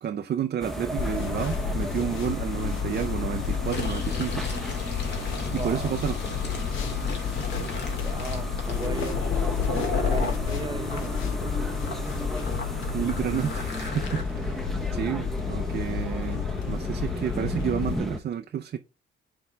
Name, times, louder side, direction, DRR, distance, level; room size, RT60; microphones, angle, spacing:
voice 1, 0.0-4.4 5.5-6.2 12.9-14.7 14.9-18.8, right 9 dB, 50° right, 0.6 m, -30 dB
sound 1, 0.6-18.2, equal, ahead, 1.1 m, -34 dB
sound 2, 1.0-18.0, left 7 dB, 80° left, 1.3 m, -31 dB
Fill (with liquid), 3.6-10.4 10.9-14.2, left 3 dB, 60° left, 2.3 m, -36 dB
voice 2, 5.5-5.9 8.0-9.2 10.0-11.7, right 3 dB, 25° right, 0.8 m, -36 dB
9.4 x 3.8 x 3.3 m
cardioid pair, 90°, 20 cm